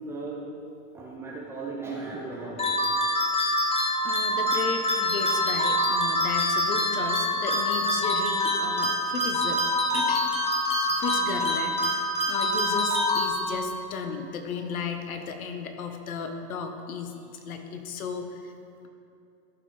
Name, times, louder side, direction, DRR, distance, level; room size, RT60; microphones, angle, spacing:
voice 1, 0.1-0.4 0.9-2.8, right 3 dB, 5° right, -4 dB, 0.3 m, -36 dB
sound 1, 2.6-13.8, left 1 dB, 10° left, 1.3 m, -25 dB
voice 2, 4.0-10.2 10.9-18.5, left 5 dB, 60° left, 6 dB, 1.2 m, -34 dB
14.0 x 6.9 x 4.4 m, 2.6 s
figure-of-eight pair, 95°, 47 cm